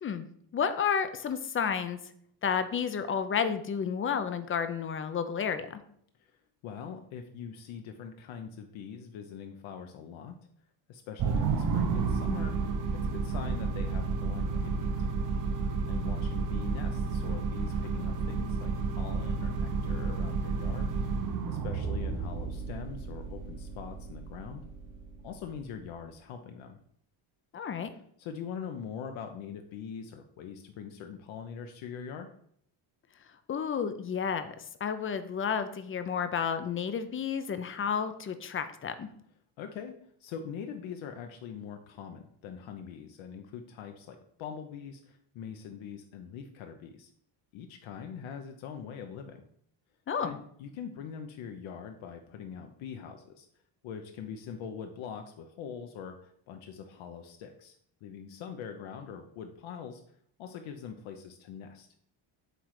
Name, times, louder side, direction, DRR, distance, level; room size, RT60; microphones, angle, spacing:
voice 1, 0.5-2.0 2.4-5.8 27.5-27.9 33.5-39.1 50.1-50.4, left 7 dB, 30° left, 10 dB, 0.4 m, -31 dB
voice 2, 6.6-10.4 10.9-12.5 12.9-15.1 15.9-20.9 21.5-24.6 25.2-26.8 28.2-32.3 39.6-39.9 40.2-47.1 47.5-49.4 50.2-53.5 53.8-57.8 58.0-60.0 60.4-61.9, left 7 dB, 70° left, 5 dB, 0.8 m, -43 dB
sound 1, 11.2-25.7, right 4 dB, 40° right, 0.8 m, -31 dB
7.8 x 3.2 x 4.7 m, 0.67 s
cardioid pair, 140°, 48 cm